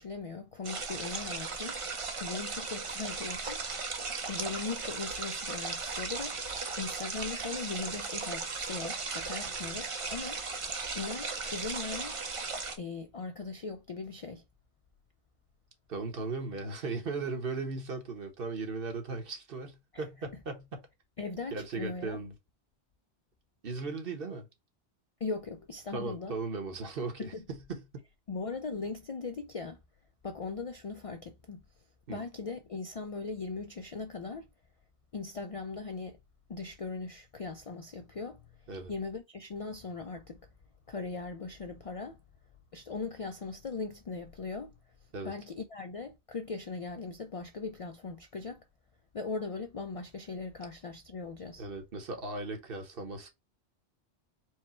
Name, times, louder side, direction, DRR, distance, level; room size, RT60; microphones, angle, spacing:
voice 1, 0.0-1.8 2.2-3.6 4.3-6.4 6.8-10.4 10.9-12.2 12.8-14.4 21.2-22.2 25.2-26.3 27.2-27.4 28.3-29.8 30.2-31.6 32.1-34.5 35.1-36.2 36.5-38.4 38.9-40.4 40.9-42.2 42.7-44.7 45.2-48.6 49.1-51.6, left 4 dB, 55° left, 0.4 m, -39 dB
sound 1, 0.6-12.8, right 4 dB, 35° right, 0.6 m, -37 dB
voice 2, 15.9-20.9 21.5-22.3 23.6-24.5 25.9-28.0 32.1-32.2 38.7-38.9 45.1-45.3 51.6-53.3, right 3 dB, 60° right, 1.2 m, -37 dB
4.6 x 2.2 x 4.2 m
omnidirectional pair, 1.1 m